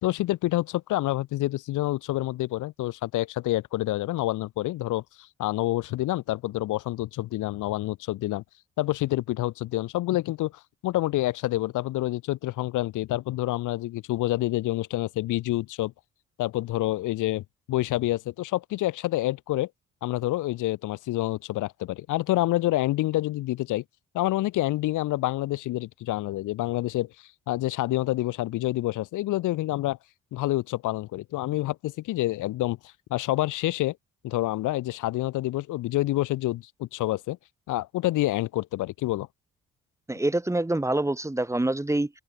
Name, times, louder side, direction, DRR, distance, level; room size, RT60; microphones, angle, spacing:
voice 1, 0.0-8.4 8.8-10.5 10.8-15.9 16.4-19.7 20.0-23.8 24.1-27.1 27.5-30.0 30.3-32.8 33.1-34.0 34.2-37.4 37.7-39.3, left 16 dB, 90° left, 1.6 m, -27 dB
voice 2, 40.1-42.1, right 1 dB, 10° right, 1.6 m, -26 dB
open air
cardioid pair, 90°, 30 cm